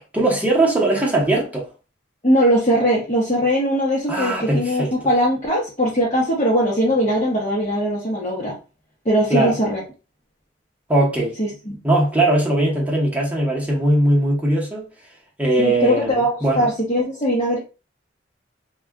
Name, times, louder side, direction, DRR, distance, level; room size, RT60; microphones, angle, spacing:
voice 1, 0.1-1.7 4.1-4.9 9.3-9.6 10.9-11.4 11.8-14.9 15.4-16.7, right 1 dB, 10° right, 0.9 m, -19 dB
voice 2, 2.2-8.6 9.0-9.8 11.4-11.8 15.6-17.6, equal, 35° left, 0.8 m, -20 dB
2.4 x 2.2 x 3.4 m
head